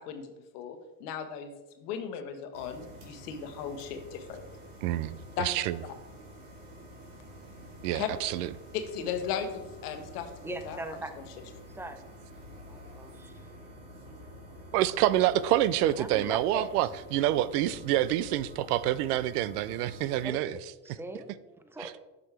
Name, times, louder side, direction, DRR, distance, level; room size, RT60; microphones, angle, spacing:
voice 1, 0.0-4.4 5.4-5.5 7.9-8.1 8.7-10.3 10.6-10.8, left 7 dB, 80° left, 7 dB, 1.1 m, -36 dB
sound 1, 2.5-20.3, equal, 60° right, 2.3 m, -49 dB
voice 2, 4.8-5.1 5.4-5.8 7.8-8.5 14.7-20.6 21.8-21.9, right 13 dB, 80° right, 17 dB, 0.5 m, -27 dB
voice 3, 10.4-11.1 11.7-12.0 12.7-13.3 16.0-16.7 20.2-20.4 20.8-22.0, right 2 dB, 5° right, 9 dB, 0.5 m, -40 dB
7.3 x 6.2 x 3.3 m, 1.1 s
supercardioid pair, 90°, 46 cm